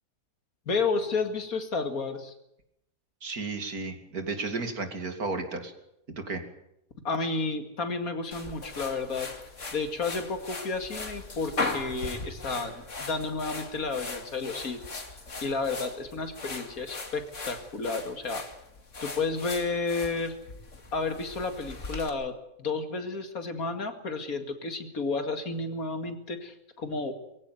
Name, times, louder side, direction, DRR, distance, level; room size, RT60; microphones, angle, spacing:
voice 1, 0.7-2.3 7.0-9.3 9.7-15.0 15.4-18.4 19.0-20.3 20.9-22.3 22.6-27.3, left 4 dB, 75° left, 7 dB, 2.6 m, -31 dB
voice 2, 3.2-5.7 6.1-6.4, right 3 dB, 90° right, 6 dB, 3.1 m, -33 dB
sound 1, 8.3-22.1, left 3 dB, 55° left, 2.6 m, -39 dB
23.0 x 15.5 x 9.4 m, 0.83 s
omnidirectional pair, 1.5 m